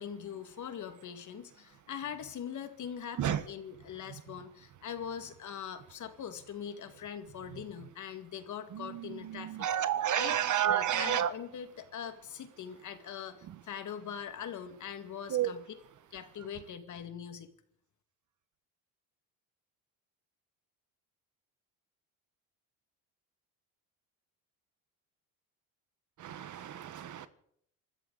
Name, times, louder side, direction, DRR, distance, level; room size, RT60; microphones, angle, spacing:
voice 1, 0.0-9.5 10.1-10.4 10.6-15.6 16.1-17.5, left 8 dB, 45° left, 2.2 m, -42 dB
voice 2, 8.7-11.3 13.5-13.6 15.3-15.5 26.2-27.3, right 11 dB, 45° right, 1.3 m, -31 dB
25.5 x 13.5 x 4.1 m
supercardioid pair, 105°, 40 cm